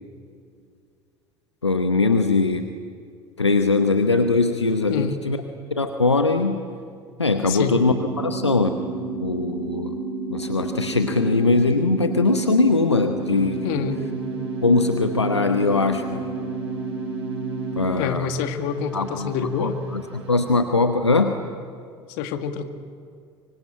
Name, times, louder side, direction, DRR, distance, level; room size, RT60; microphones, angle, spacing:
voice 1, 1.6-2.7 3.4-5.4 5.7-6.6 7.2-8.9 9.2-10.0 10.3-13.8 14.6-16.2 17.8-18.3 18.9-20.0 20.3-21.3, left 3 dB, 90° left, 7 dB, 1.0 m, -21 dB
voice 2, 7.5-7.8 13.6-14.0 18.0-19.8 22.1-22.7, left 7 dB, 60° left, 7 dB, 2.0 m, -27 dB
sound 1, 7.9-17.9, right 3 dB, 5° left, 7.4 m, -30 dB
sound 2, 13.2-20.7, right 6 dB, 75° right, 4.1 m, -39 dB
25.0 x 24.5 x 9.1 m, 2.3 s
figure-of-eight pair, 65°, 14 cm